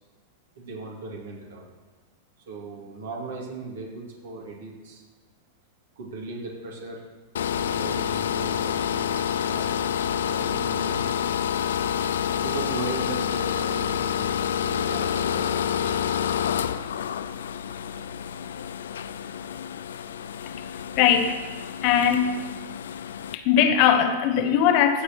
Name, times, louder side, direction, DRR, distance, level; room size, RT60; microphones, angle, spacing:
voice 1, 0.6-1.7 2.5-5.0 6.0-7.0 7.7-9.7 10.3-11.2 12.4-16.0, right 3 dB, 60° right, -2 dB, 2.3 m, -37 dB
sound 1, 7.4-23.4, left 8 dB, 65° left, 0.3 m, -28 dB
voice 2, 21.0-21.4 21.8-22.4 23.3-25.0, left 8 dB, 45° left, 7 dB, 0.9 m, -20 dB
15.0 x 6.7 x 3.1 m, 1.3 s
figure-of-eight pair, 95°, 0 cm